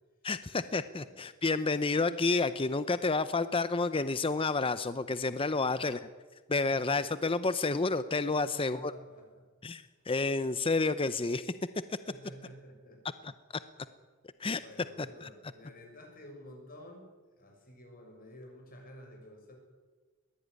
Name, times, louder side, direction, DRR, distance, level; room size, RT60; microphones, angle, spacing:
voice 1, 0.2-6.0 6.5-8.9 9.6-11.5 11.9-12.0 13.2-13.3 14.4-14.6 15.2-15.3, left 3 dB, 25° left, 13 dB, 0.6 m, -30 dB
voice 2, 0.9-1.2 5.6-6.1 6.6-7.0 8.3-9.4 9.9-10.0 12.1-13.0 14.5-19.6, equal, 45° left, 2 dB, 6.7 m, -51 dB
21.5 x 16.5 x 9.6 m, 1.4 s
head